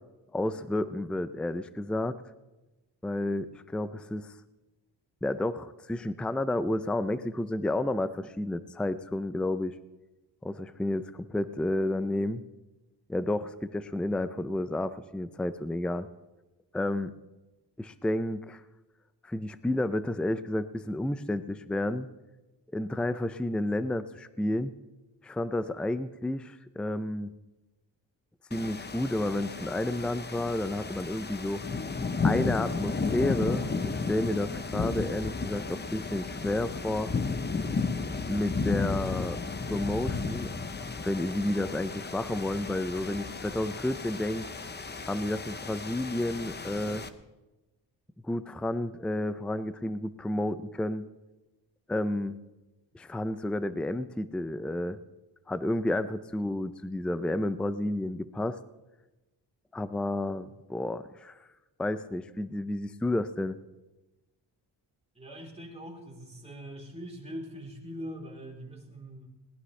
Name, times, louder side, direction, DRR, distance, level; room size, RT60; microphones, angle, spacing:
voice 1, 0.3-2.2 3.0-4.3 5.2-9.8 10.4-12.4 13.1-16.1 16.7-17.1 17.8-18.6 19.2-22.1 22.7-24.7 25.2-27.3 28.5-31.6 32.2-37.1 38.3-39.4 39.7-40.5 41.0-44.5 45.0-47.0 48.2-51.1 51.9-52.4 52.9-55.0 55.5-58.6 59.7-61.4 61.8-63.6, left 1 dB, 5° left, 12 dB, 0.4 m, -31 dB
sound 1, 28.5-47.1, left 4 dB, 25° left, 0.8 m, -33 dB
voice 2, 65.2-69.3, equal, 15° right, -1 dB, 3.7 m, -42 dB
21.0 x 18.5 x 3.2 m, 1.1 s
wide cardioid pair, 140°, 43 cm